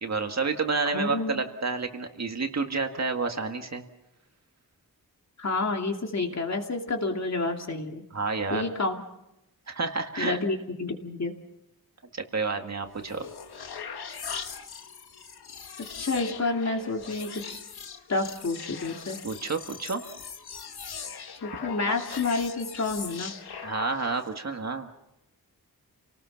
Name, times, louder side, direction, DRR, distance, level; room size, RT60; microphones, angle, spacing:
voice 1, 0.0-3.8 8.1-8.7 9.7-10.4 12.1-13.3 19.2-20.0 23.6-24.9, right 4 dB, 45° right, 5 dB, 1.8 m, -29 dB
voice 2, 0.9-1.4 5.4-8.0 8.5-9.0 10.2-11.3 16.0-17.6 18.1-19.2 21.4-23.3, left 3 dB, 45° left, 3 dB, 2.6 m, -29 dB
sound 1, 12.9-24.3, left 6 dB, 85° left, 1.6 m, -40 dB
29.0 x 19.0 x 5.9 m, 0.86 s
wide cardioid pair, 130°, 37 cm